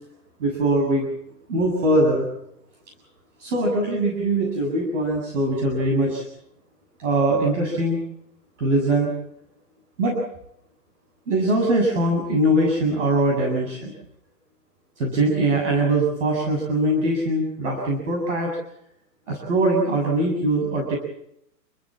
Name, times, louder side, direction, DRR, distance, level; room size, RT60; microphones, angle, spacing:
voice 1, 0.4-1.1 1.5-2.3 3.4-6.3 7.0-8.0 8.6-9.1 10.0-10.2 11.3-13.9 15.0-18.6 19.3-21.0, right 1 dB, 45° right, 0 dB, 7.5 m, -22 dB
29.0 x 15.0 x 7.6 m, 0.78 s
hypercardioid pair, 175°, 49 cm